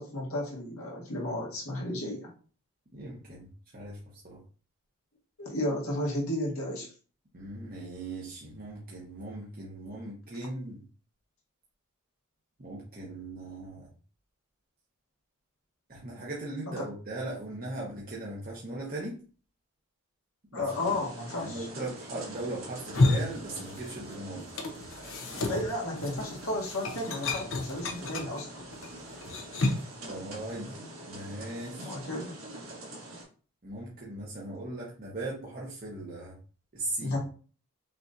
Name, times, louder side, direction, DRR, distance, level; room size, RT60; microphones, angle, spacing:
voice 1, 0.0-2.3 5.4-6.9 16.8-16.9 20.5-21.7 25.5-28.6 31.8-32.4 37.0-37.2, left 1 dB, 85° left, -3 dB, 1.5 m, -33 dB
voice 2, 2.9-4.4 7.3-10.8 12.6-13.9 15.9-19.2 20.5-21.0 21.4-24.4 25.3-25.7 30.0-31.9 33.6-36.4 36.7-37.2, right 2 dB, 40° right, -4 dB, 0.9 m, -39 dB
sound 1, 20.7-33.2, right 2 dB, 80° right, 1.6 m, -45 dB
sound 2, 22.7-24.1 24.4-30.0, left 2 dB, 70° left, 0.7 m, -31 dB
5.6 x 2.6 x 2.6 m, 0.39 s
head